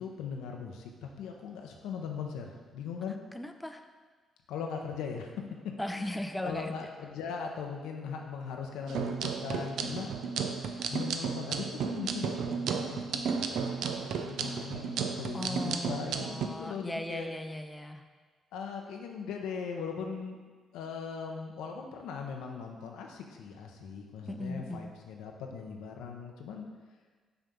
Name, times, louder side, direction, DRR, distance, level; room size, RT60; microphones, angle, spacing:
voice 1, 0.0-3.2 4.5-5.3 5.9-10.1 10.9-17.3 18.5-20.4 20.7-26.7, left 6 dB, 80° left, 2 dB, 0.7 m, -39 dB
voice 2, 3.3-3.8 5.8-6.9 15.3-18.0 24.2-24.9, left 1 dB, 10° left, 6 dB, 0.5 m, -38 dB
sound 1, 8.9-16.5, right 6 dB, 75° right, 0.4 m, -33 dB
5.8 x 3.6 x 5.3 m, 1.5 s
hypercardioid pair, 50°, 0 cm